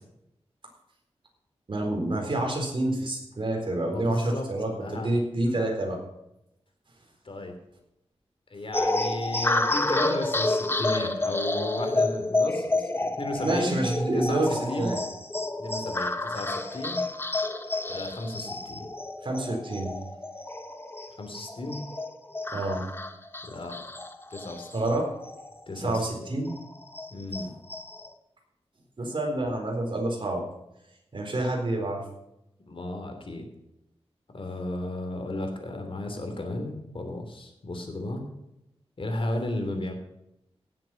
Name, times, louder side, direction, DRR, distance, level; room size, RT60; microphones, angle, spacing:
voice 1, 1.7-6.0 13.4-15.0 19.2-19.9 22.5-22.8 24.7-25.0 25.8-26.5 29.0-30.4 31.1-32.0, right 1 dB, 50° right, 1 dB, 4.1 m, -28 dB
voice 2, 3.8-4.5 4.8-5.1 5.4-5.5 7.2-7.5 8.5-13.8 14.1-14.9 15.6-17.0 17.9-18.9 21.2-21.8 23.4-23.7 24.3-24.9 25.7-26.3 27.1-27.5 32.7-33.5 34.3-38.2 39.0-39.9, left 1 dB, 55° left, 4 dB, 3.0 m, -34 dB
sound 1, 8.7-25.6 26.0-26.1 26.5-28.1, left 2 dB, 20° left, 1.0 m, -30 dB
17.0 x 7.7 x 5.8 m, 0.86 s
wide cardioid pair, 110°, 11 cm